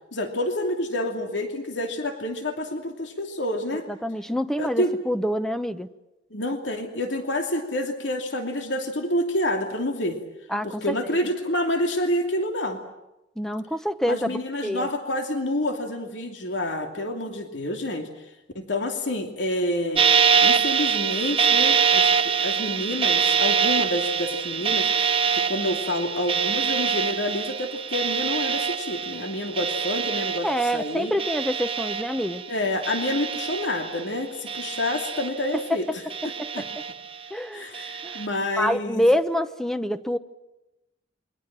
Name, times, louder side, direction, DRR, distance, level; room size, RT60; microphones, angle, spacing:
voice 1, 0.1-3.9 4.6-5.0 6.3-10.2 10.6-12.8 14.1-18.1 18.5-20.1 20.4-31.1 32.5-36.7 37.5-39.0, left 1 dB, 80° left, 4 dB, 2.7 m, -28 dB
voice 2, 3.9-5.9 10.5-11.2 13.4-14.9 30.4-32.4 36.4-36.7 37.3-37.6 38.0-38.2 38.6-40.2, equal, ahead, 11 dB, 0.9 m, -26 dB
sound 1, 20.0-32.5 32.8-34.0 34.5-35.7 36.1-37.2 37.7-38.3, right 7 dB, 30° right, 0.9 m, -24 dB
28.5 x 23.0 x 7.5 m, 0.94 s
head